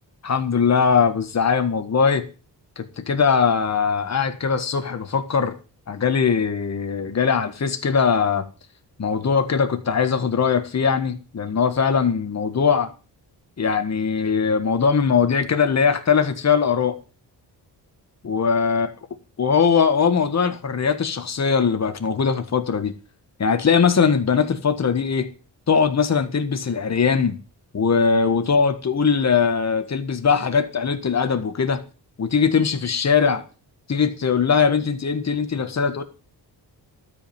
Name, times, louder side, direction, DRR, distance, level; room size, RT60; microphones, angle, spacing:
voice 1, 0.2-2.2 2.8-5.5 5.9-8.4 9.0-12.9 13.6-17.0 18.2-18.9 19.4-22.9 23.4-25.3 25.7-27.4 27.7-31.8 32.2-33.4 33.9-36.0, left 6 dB, 40° left, 1.6 m, -20 dB
12.5 x 5.4 x 8.7 m
wide cardioid pair, 135°, 42 cm